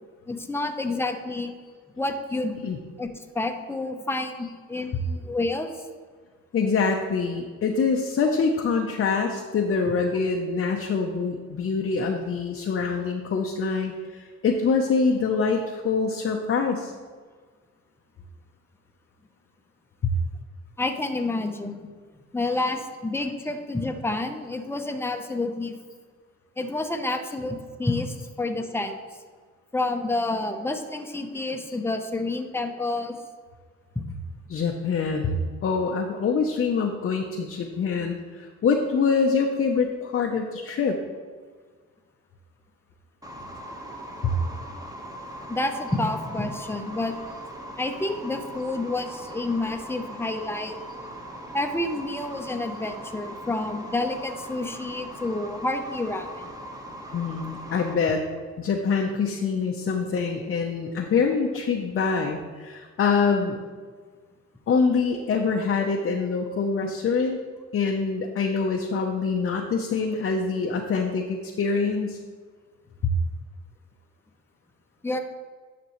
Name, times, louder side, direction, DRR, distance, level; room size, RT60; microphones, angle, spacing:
voice 1, 0.3-1.5 2.0-2.6 3.0-3.1 3.3-5.7 20.8-21.9 22.3-25.7 26.6-29.0 29.7-33.2 45.5-47.2 47.8-50.8 51.5-56.5 75.0-75.2, left 2 dB, 10° left, 5 dB, 0.7 m, -29 dB
voice 2, 6.5-16.9 20.0-20.1 31.7-31.8 34.5-41.0 44.2-44.3 57.1-58.2 58.6-63.6 64.7-67.4 67.7-72.2 73.0-73.1, left 5 dB, 45° left, 2 dB, 0.7 m, -25 dB
sound 1, 43.2-57.9, right 1 dB, 10° right, 1.2 m, -40 dB
9.8 x 6.0 x 3.1 m, 1.5 s
cardioid pair, 90°, 30 cm